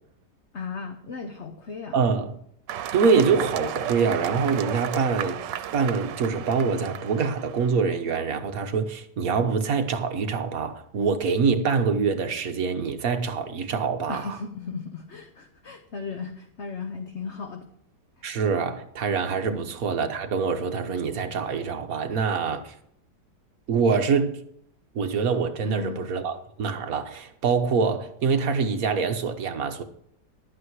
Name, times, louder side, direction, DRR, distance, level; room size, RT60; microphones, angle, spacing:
voice 1, 0.5-2.0 14.1-17.7 18.2-18.3 19.5-19.7 25.6-26.0, left 4 dB, 45° left, 1.1 m, -36 dB
voice 2, 1.9-2.4 2.9-14.4 18.2-22.7 23.7-24.4 24.9-29.8, right 5 dB, 55° right, 1.4 m, -25 dB
sound 1, 2.7-7.8, right 10 dB, 90° right, 1.4 m, -34 dB
12.0 x 8.7 x 4.7 m
omnidirectional pair, 1.9 m